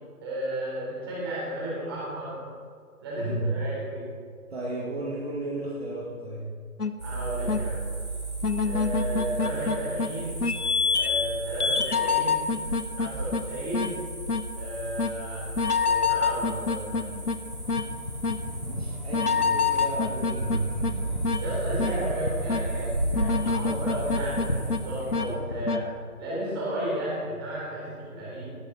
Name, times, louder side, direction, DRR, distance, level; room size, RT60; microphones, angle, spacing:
voice 1, 0.2-2.4 3.0-4.0 7.0-7.9 8.6-10.3 10.9-12.4 12.9-13.9 14.6-15.4 15.7-17.2 21.4-25.9 26.2-28.6, right 1 dB, 15° right, -7 dB, 4.0 m, -33 dB
voice 2, 3.2-3.6 4.5-6.4 18.6-21.4, right 2 dB, 40° right, -5 dB, 2.4 m, -33 dB
sound 1, 6.8-6.9 7.5-7.6 8.4-10.1 10.4-11.3 11.6-13.4 13.7-13.9 14.3-14.4 15.0-15.1 15.6-17.4 17.7-17.8 18.2-18.4 19.1-20.9 21.2-21.4 21.8-21.9 22.5-22.6 23.1-24.8 25.1-25.3 25.7-25.8, left 5 dB, 80° left, 1.1 m, -26 dB
sound 2, 7.0-25.4, right 2 dB, 85° right, 3.7 m, -35 dB
sound 3, 17.4-25.7, left 1 dB, 30° left, 0.7 m, -35 dB
18.5 x 9.8 x 4.1 m, 2.1 s
figure-of-eight pair, 160°, 45 cm